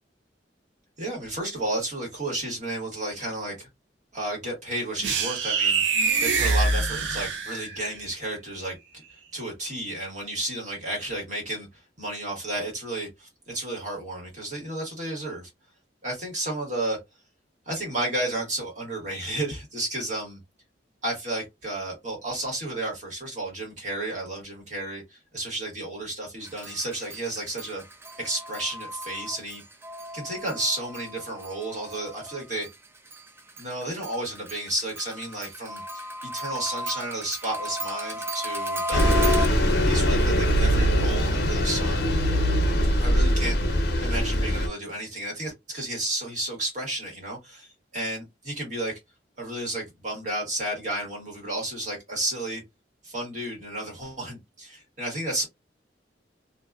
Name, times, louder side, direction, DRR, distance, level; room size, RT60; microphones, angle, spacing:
voice 1, 1.0-3.7 4.1-8.8 9.3-15.5 16.0-17.0 17.6-20.4 21.0-27.8 28.2-29.6 30.1-32.7 33.6-39.5 39.8-42.1 43.0-49.0 49.4-52.6 53.0-55.4, right 1 dB, 45° right, 1.5 m, -32 dB
sound 1, 5.0-7.9, right 4 dB, 85° right, 0.5 m, -24 dB
sound 2, 26.4-32.7 33.1-39.5, equal, 15° right, 0.3 m, -34 dB
Bus, 38.9-44.7, equal, 65° left, 0.7 m, -22 dB
2.6 x 2.3 x 2.3 m
head